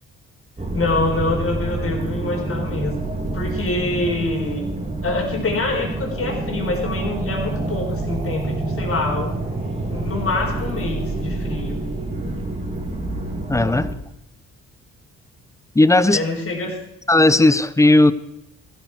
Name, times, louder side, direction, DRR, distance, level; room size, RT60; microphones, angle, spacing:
sound 1, 0.6-13.9, right 2 dB, 20° right, 3.0 m, -27 dB
voice 1, 0.7-2.9 3.3-4.7 5.0-9.4 9.8-11.8 16.1-16.8, left 2 dB, 45° left, 2 dB, 4.2 m, -25 dB
voice 2, 13.5-13.9 15.7-16.2 17.1-18.1, left 2 dB, 10° left, 16 dB, 0.7 m, -15 dB
15.0 x 12.5 x 4.8 m, 0.84 s
cardioid pair, 90°, 30 cm